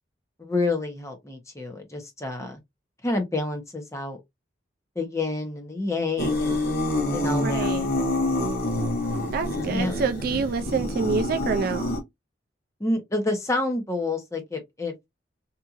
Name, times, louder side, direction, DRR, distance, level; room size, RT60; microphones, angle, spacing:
voice 1, 0.4-2.6 3.0-4.2 5.0-6.6 7.1-7.7 9.6-9.9 12.8-14.9, left 2 dB, 15° left, 0.8 m, -28 dB
sound 1, 6.2-12.0, left 1 dB, 55° left, 0.8 m, -26 dB
voice 2, 7.4-7.9 9.3-11.9, right 5 dB, 55° right, 0.3 m, -27 dB
2.8 x 2.5 x 2.4 m
head